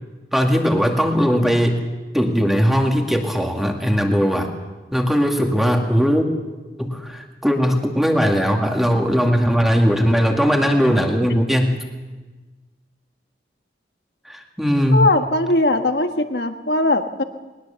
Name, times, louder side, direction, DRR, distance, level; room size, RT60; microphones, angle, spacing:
voice 1, 0.3-1.8 2.1-4.5 4.9-6.3 6.8-11.8 14.3-15.1, equal, ahead, 2 dB, 2.1 m, -19 dB
voice 2, 14.9-17.2, left 2 dB, 65° left, 6 dB, 1.4 m, -19 dB
21.0 x 20.0 x 7.0 m, 1.2 s
head